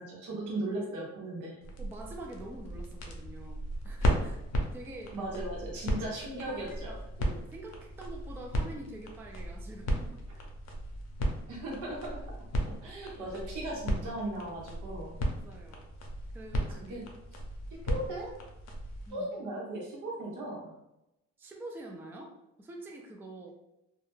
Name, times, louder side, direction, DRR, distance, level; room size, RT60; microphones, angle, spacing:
voice 1, 0.0-1.6 5.1-6.9 11.5-12.2 12.8-15.2 16.7-17.0 17.8-18.3 19.1-20.7, right 1 dB, 85° right, -3 dB, 1.0 m, -37 dB
sound 1, 1.6-19.1, equal, 60° left, 0.6 m, -35 dB
voice 2, 1.8-4.4 4.7-5.2 6.5-6.6 6.8-10.4 15.3-15.9 16.3-16.9 19.1-19.3 21.4-23.5, right 2 dB, 10° right, 1 dB, 0.3 m, -46 dB
2.3 x 2.1 x 3.1 m, 0.90 s
cardioid pair, 90°, 30 cm